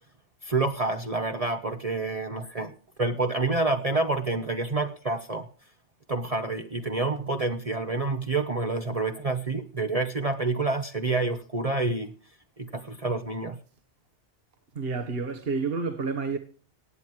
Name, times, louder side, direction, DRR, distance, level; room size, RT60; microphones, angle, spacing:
voice 1, 0.4-2.7 3.0-5.5 6.1-12.1 12.6-13.6, right 3 dB, 35° right, 1.0 m, -28 dB
voice 2, 14.7-16.4, right 4 dB, 55° right, 1.6 m, -29 dB
17.0 x 9.3 x 4.6 m
omnidirectional pair, 1.2 m